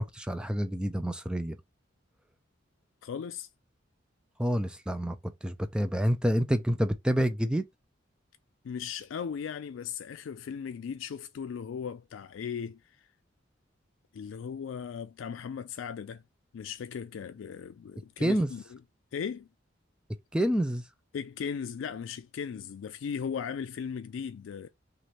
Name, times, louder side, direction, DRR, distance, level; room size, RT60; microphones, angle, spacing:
voice 1, 0.0-1.6 4.4-7.7 18.2-18.5 20.3-20.8, equal, 5° right, 0.4 m, -28 dB
voice 2, 3.0-3.5 8.6-13.1 14.1-16.2 16.5-18.8 19.1-19.5 21.1-24.7, left 7 dB, 85° left, 0.3 m, -37 dB
3.1 x 2.5 x 4.2 m
head